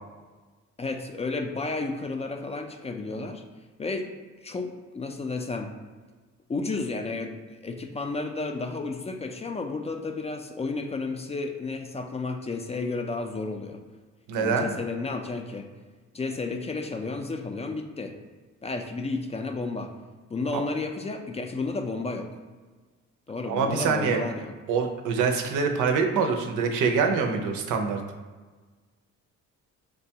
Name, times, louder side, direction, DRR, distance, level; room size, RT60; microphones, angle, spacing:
voice 1, 0.8-3.4 3.8-4.1 4.4-5.7 6.5-13.8 14.4-15.7 16.1-18.2 18.6-19.9 20.3-22.3 23.3-24.5, left 3 dB, 20° left, 5 dB, 0.3 m, -32 dB
voice 2, 14.3-14.7 20.5-20.6 23.5-24.2 24.7-28.0, right 5 dB, 85° right, 4 dB, 0.6 m, -25 dB
5.0 x 2.2 x 2.7 m, 1.4 s
cardioid pair, 90°, 30 cm